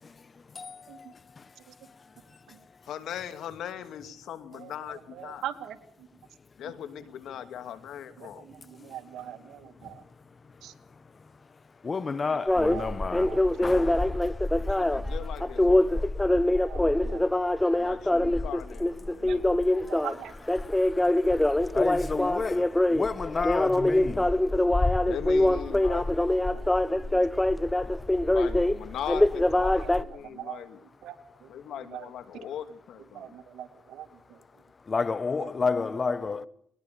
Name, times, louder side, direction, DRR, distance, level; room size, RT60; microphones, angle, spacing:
voice 1, 2.8-5.4 6.6-8.5 14.7-16.1 17.7-19.5 25.0-26.0 28.3-30.8 31.5-33.4, left 9 dB, 75° left, 2.3 m, -39 dB
voice 2, 5.2-5.8 8.2-8.3 8.7-10.0 10.6-10.7 12.7-12.9 13.2-13.4 16.3-17.5 19.2-19.4 19.9-20.3 26.5-27.2 29.8-29.9 30.2-30.6 31.0-31.2 31.4-31.5 31.9-32.0 33.1-34.1, right 11 dB, 80° right, 2.6 m, -41 dB
voice 3, 11.8-13.4 13.6-14.1 21.7-24.3 34.9-36.5, left 4 dB, 35° left, 1.2 m, -30 dB
sound 1, 12.5-30.0, left 1 dB, 10° left, 1.0 m, -24 dB
20.5 x 20.0 x 6.9 m
cardioid pair, 90°, 0 cm